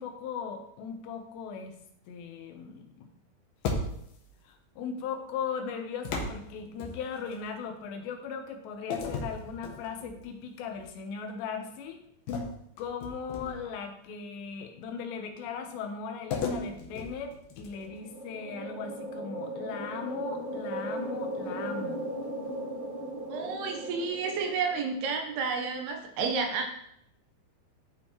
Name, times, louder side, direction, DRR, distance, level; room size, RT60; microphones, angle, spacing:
voice 1, 0.0-1.8 2.1-3.1 4.4-12.1 12.8-22.0, left 6 dB, 85° left, 5 dB, 3.1 m, -38 dB
sound 1, 3.6-4.3 6.0-7.4 8.9-10.2 10.7-10.9 12.3-13.8 16.3-17.9, left 3 dB, 70° left, 2.4 m, -35 dB
sound 2, 17.7-25.4, right 1 dB, 55° right, 4.1 m, -37 dB
voice 2, 23.3-26.7, right 5 dB, 80° right, 3 dB, 2.7 m, -31 dB
13.0 x 4.5 x 3.0 m, 0.74 s
omnidirectional pair, 4.8 m